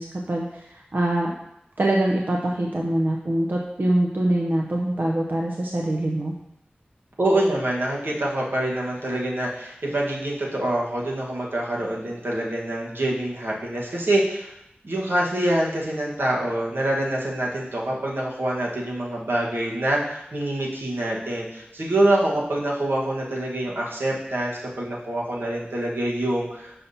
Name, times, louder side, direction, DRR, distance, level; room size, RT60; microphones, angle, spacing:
voice 1, 0.0-1.3 1.8-6.3, right 1 dB, 60° right, -1 dB, 0.6 m, -24 dB
voice 2, 7.2-14.5 14.8-26.7, right 1 dB, 85° right, -4 dB, 1.3 m, -25 dB
6.8 x 5.6 x 2.7 m, 0.83 s
wide cardioid pair, 40°, 4 cm